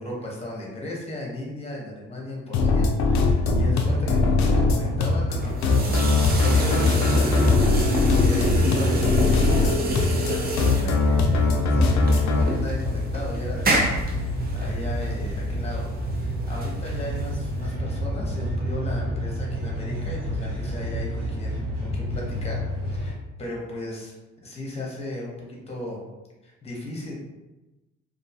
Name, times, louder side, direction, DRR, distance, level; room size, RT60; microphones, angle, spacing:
voice 1, 0.0-6.0 6.3-9.7 10.1-24.1 24.4-26.0 26.4-27.1, left 1 dB, 20° left, -3 dB, 0.8 m, -36 dB
sound 1, 2.5-12.4, left 3 dB, 65° left, 0.4 m, -21 dB
sound 2, 3.2-23.1, left 1 dB, 60° right, 1.1 m, -29 dB
sound 3, 5.3-17.7, right 1 dB, 30° right, 0.5 m, -29 dB
2.5 x 2.3 x 2.7 m, 1.1 s
cardioid pair, 90°, 30 cm